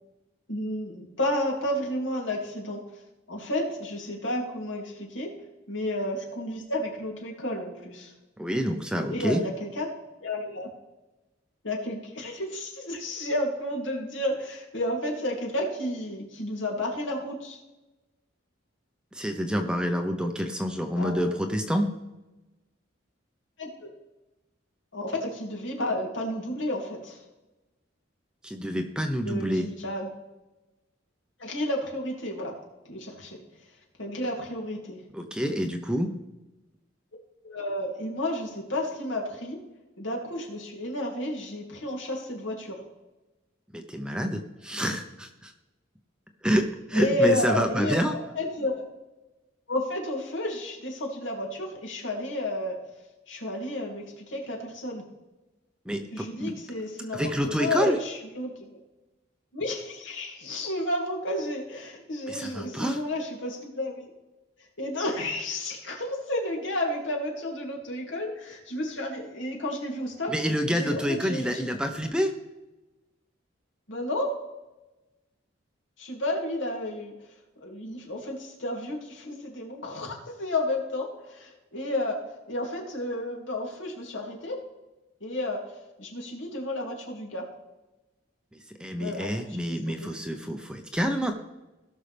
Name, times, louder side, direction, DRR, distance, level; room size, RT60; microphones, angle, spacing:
voice 1, 0.5-2.8 3.3-5.3 5.7-8.1 9.1-9.9 10.2-10.7 11.6-17.6 21.0-21.1 23.6-23.9 24.9-27.2 29.2-30.1 31.4-32.5 32.9-33.4 34.0-35.0 37.4-39.6 40.0-42.8 46.9-48.9 49.7-52.8 53.3-55.0 56.1-57.2 57.6-58.8 59.5-64.1 64.8-70.3 70.7-71.7 73.9-74.3 76.0-77.1 77.6-82.2 82.5-84.6 85.2-85.6 86.0-87.5 89.0-89.3 89.7-90.1, left 1 dB, 75° left, -1 dB, 2.8 m, -31 dB
voice 2, 8.4-9.4 19.1-21.9 28.4-29.7 35.1-36.1 43.7-45.5 46.4-48.1 55.9-56.5 57.1-58.0 62.3-63.0 70.3-72.3 88.8-91.3, equal, 5° right, 5 dB, 0.8 m, -27 dB
17.5 x 6.4 x 3.4 m, 1.0 s
head